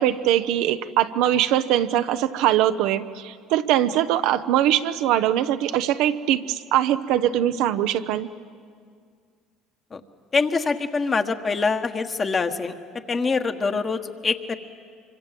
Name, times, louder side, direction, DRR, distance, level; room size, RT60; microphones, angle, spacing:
voice 1, 0.0-8.3, right 12 dB, 75° right, 10 dB, 0.8 m, -22 dB
voice 2, 10.3-12.7 13.1-14.6, left 4 dB, 30° left, 7 dB, 1.5 m, -24 dB
25.5 x 24.5 x 7.7 m, 2.1 s
supercardioid pair, 95°, 0 cm